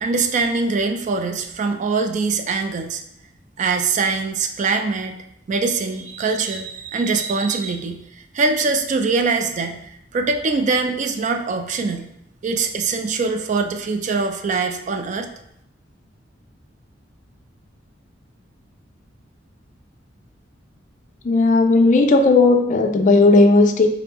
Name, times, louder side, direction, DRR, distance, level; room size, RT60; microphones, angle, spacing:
voice 1, 0.0-3.0 3.6-5.1 5.5-8.0 8.3-12.1 12.4-15.3, right 4 dB, 40° right, 6 dB, 0.3 m, -23 dB
voice 2, 21.2-23.9, left 3 dB, 45° left, 6 dB, 0.4 m, -14 dB
3.7 x 2.9 x 3.5 m, 0.77 s
head